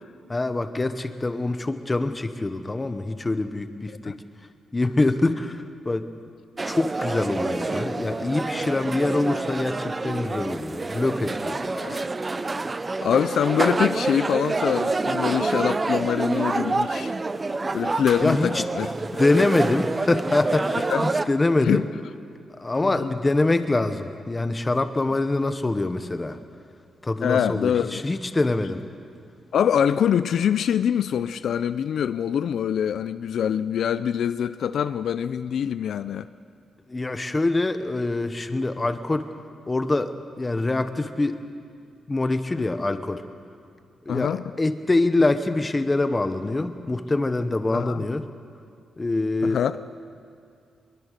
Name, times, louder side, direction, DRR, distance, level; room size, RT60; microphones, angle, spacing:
voice 1, 0.3-4.2 4.7-6.0 6.6-11.7 18.2-18.6 19.2-21.9 22.6-26.4 27.0-28.9 36.9-39.3 39.7-41.4 42.1-43.2 44.1-48.3 49.0-49.6, left 2 dB, 15° left, 1.1 m, -24 dB
sound 1, 6.6-21.3, right 3 dB, 20° right, 0.6 m, -27 dB
voice 2, 13.0-17.1 17.7-18.9 19.3-19.5 20.9-21.0 21.6-21.8 22.8-23.1 27.2-28.0 29.5-36.3 44.1-44.4 47.7-48.0 49.4-49.8, left 8 dB, 65° left, 0.5 m, -24 dB
24.0 x 22.0 x 6.7 m
wide cardioid pair, 155°, 0 cm